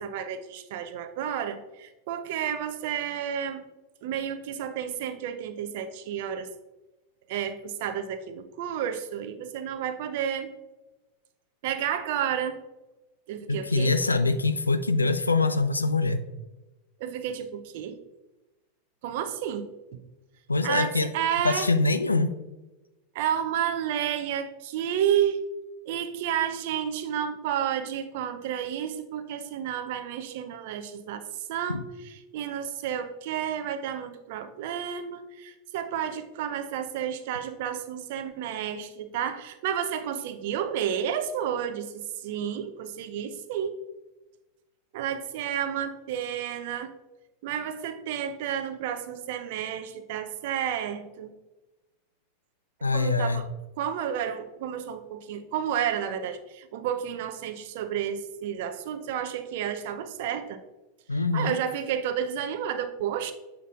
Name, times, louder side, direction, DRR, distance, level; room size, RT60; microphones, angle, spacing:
voice 1, 0.0-3.6 4.0-6.5 7.3-10.5 11.6-12.6 13.3-14.0 17.0-18.0 19.0-20.0 20.6-21.7 23.1-25.4 25.9-43.8 44.9-46.9 47.4-51.3 52.9-53.5 53.8-60.6 61.3-63.3, right 9 dB, 55° right, 9 dB, 0.6 m, -31 dB
voice 2, 13.5-16.2 20.5-21.1 21.4-22.3 31.7-31.8 52.8-53.4 61.1-61.5, left 3 dB, 85° left, 11 dB, 0.3 m, -24 dB
7.9 x 5.8 x 2.5 m, 1.1 s
figure-of-eight pair, 85°, 0 cm